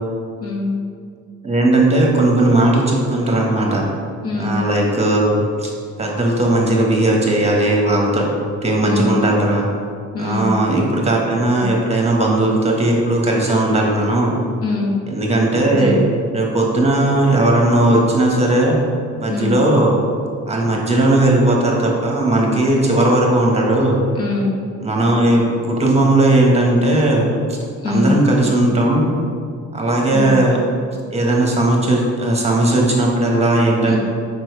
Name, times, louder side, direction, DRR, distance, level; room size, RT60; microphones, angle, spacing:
voice 1, 0.4-0.8 4.2-4.6 8.8-9.2 10.1-10.5 11.5-11.7 14.6-15.0 15.7-16.0 19.3-19.5 24.2-24.6 27.8-28.2 30.1-30.3 33.9-34.0, left 3 dB, 50° left, -2 dB, 1.5 m, -22 dB
voice 2, 1.4-3.9 4.4-5.7 6.0-8.3 8.6-9.7 10.2-14.4 15.1-16.0 16.3-18.8 19.2-20.0 20.5-24.0 24.8-27.6 27.8-29.1 29.7-30.6 31.1-34.0, right 1 dB, 20° right, -2 dB, 1.5 m, -17 dB
6.1 x 5.3 x 4.8 m, 2.2 s
cardioid pair, 90°, 30 cm